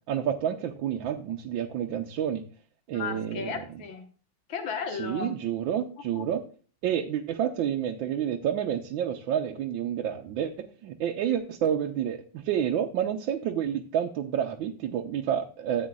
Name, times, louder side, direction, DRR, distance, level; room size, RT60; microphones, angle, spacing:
voice 1, 0.1-2.4 2.9-3.5 5.0-6.4 6.8-15.9, right 9 dB, 80° right, 3 dB, 1.4 m, -29 dB
voice 2, 2.9-4.0 4.5-5.4 6.1-6.2, left 6 dB, 85° left, 6 dB, 2.1 m, -34 dB
13.5 x 8.4 x 2.3 m, 0.40 s
omnidirectional pair, 2.1 m